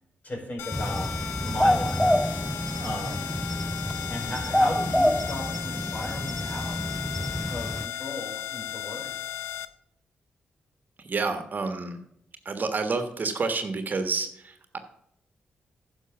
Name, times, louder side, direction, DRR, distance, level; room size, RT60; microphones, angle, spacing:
voice 1, 0.2-1.1 1.4-2.1 2.7-3.3 4.1-6.8 7.5-9.2, left 1 dB, 40° left, 0 dB, 4.2 m, -36 dB
sound 1, 0.6-9.7, left 10 dB, 80° left, 0.5 m, -36 dB
sound 2, 0.7-7.9, left 1 dB, 5° left, 0.4 m, -27 dB
voice 2, 11.1-12.0 12.4-14.8, right 4 dB, 45° right, 7 dB, 1.4 m, -29 dB
10.0 x 6.3 x 6.0 m, 0.76 s
supercardioid pair, 55°, 4 cm